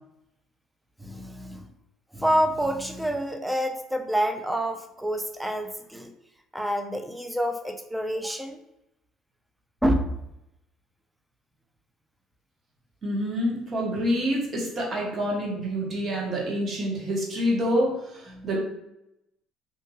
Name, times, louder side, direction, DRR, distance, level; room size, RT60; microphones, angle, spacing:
voice 1, 1.0-1.6 2.1-6.1 6.5-8.6 9.8-10.1 18.3-18.5, equal, 5° right, 5 dB, 0.4 m, -27 dB
voice 2, 13.0-18.6, equal, 45° right, -2 dB, 1.0 m, -27 dB
2.7 x 2.6 x 2.6 m, 0.84 s
supercardioid pair, 80°, 0 cm